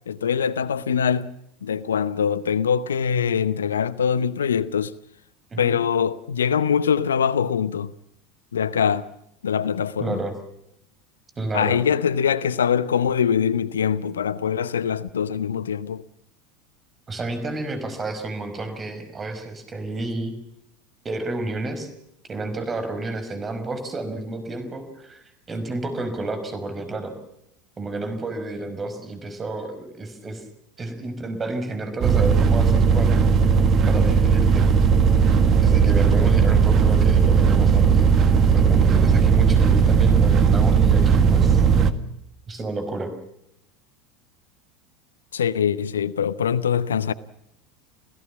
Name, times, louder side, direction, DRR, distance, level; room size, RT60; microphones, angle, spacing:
voice 1, 0.1-1.3 1.6-4.9 5.6-7.9 8.5-9.1 9.4-10.2 11.5-16.0 45.3-47.1, left 7 dB, 80° left, 0.8 m, -23 dB
voice 2, 10.0-10.4 11.4-11.8 17.1-20.3 21.0-21.9 22.3-27.1 27.8-30.4 30.8-33.3 33.9-34.8 35.6-38.3 38.5-41.6 42.5-43.1, right 2 dB, 25° right, 5.5 m, -30 dB
sound 1, 32.0-41.9, right 6 dB, 40° right, 1.8 m, -17 dB
27.0 x 17.0 x 7.3 m
figure-of-eight pair, 80°, 0 cm